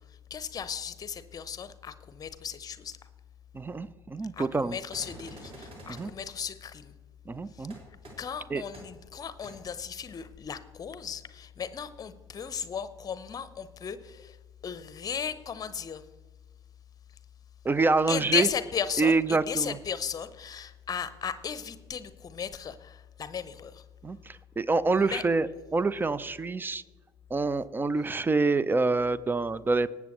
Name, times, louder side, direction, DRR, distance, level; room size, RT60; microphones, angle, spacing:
voice 1, 0.0-3.0 4.3-6.9 7.5-7.7 8.2-14.4 14.6-16.1 18.1-23.8 24.9-25.2, left 7 dB, 25° left, 14 dB, 0.8 m, -35 dB
voice 2, 3.5-4.8 5.9-6.1 7.3-7.8 8.5-8.6 17.6-18.5 19.0-19.8 24.0-26.8 27.3-29.9, right 3 dB, 15° right, 18 dB, 0.5 m, -26 dB
sound 1, 4.9-6.1 7.7-7.8 8.0-8.1 8.7-8.8 9.4-9.5, right 1 dB, 45° right, 4.0 m, -46 dB
19.0 x 8.2 x 3.1 m, 1.3 s
figure-of-eight pair, 60°, 14 cm